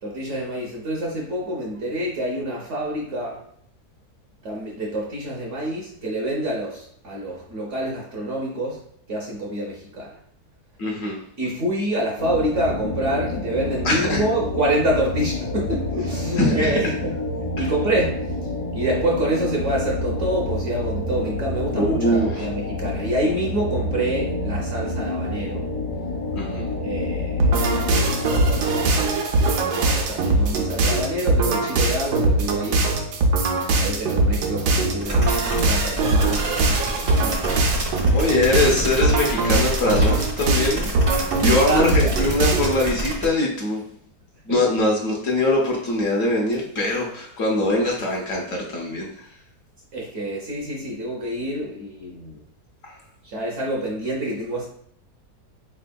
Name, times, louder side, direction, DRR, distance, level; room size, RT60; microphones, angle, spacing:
voice 1, 0.0-3.4 4.4-8.8 9.1-10.1 11.4-17.1 17.6-18.2 18.7-25.7 26.8-27.5 28.0-29.1 29.5-33.0 33.8-37.4 38.0-38.2 41.4-42.1 49.9-52.4 53.2-54.7, right 1 dB, 60° right, -2 dB, 0.9 m, -27 dB
voice 2, 10.8-11.2 13.8-14.2 16.4-16.7 17.6-17.7 21.8-22.5 26.3-26.7 38.1-43.8 44.5-49.1 52.8-53.0, left 1 dB, 60° left, -1 dB, 1.0 m, -22 dB
sound 1, 12.2-29.0, left 2 dB, 90° left, 1.4 m, -28 dB
sound 2, 27.4-42.9, right 2 dB, 90° right, 1.2 m, -21 dB
sound 3, 35.0-43.3, right 1 dB, 40° right, 0.5 m, -29 dB
3.9 x 3.4 x 2.2 m, 0.66 s
omnidirectional pair, 1.7 m